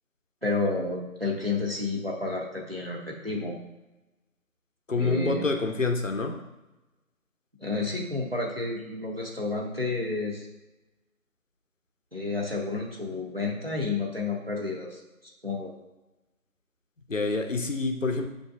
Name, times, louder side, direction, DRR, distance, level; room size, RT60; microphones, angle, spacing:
voice 1, 0.4-3.5 5.0-5.4 7.6-10.5 12.1-15.0 15.4-15.7, left 3 dB, 45° right, -1 dB, 0.6 m, -30 dB
voice 2, 4.9-6.4 17.1-18.3, left 3 dB, 60° left, 4 dB, 0.5 m, -27 dB
6.8 x 2.6 x 2.4 m, 1.0 s
figure-of-eight pair, 175°, 44 cm